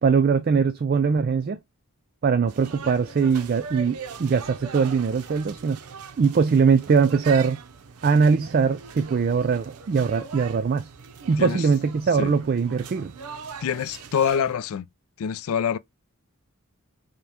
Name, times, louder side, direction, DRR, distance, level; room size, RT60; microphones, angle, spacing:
voice 1, 0.0-1.6 2.2-5.8 6.2-7.6 8.0-10.9 11.3-13.1, right 5 dB, 40° right, 0.3 m, -21 dB
sound 1, 2.5-14.5, right 5 dB, 85° right, 0.6 m, -41 dB
voice 2, 13.6-14.9 15.2-15.8, left 7 dB, 70° left, 0.3 m, -25 dB
5.1 x 2.2 x 2.8 m
head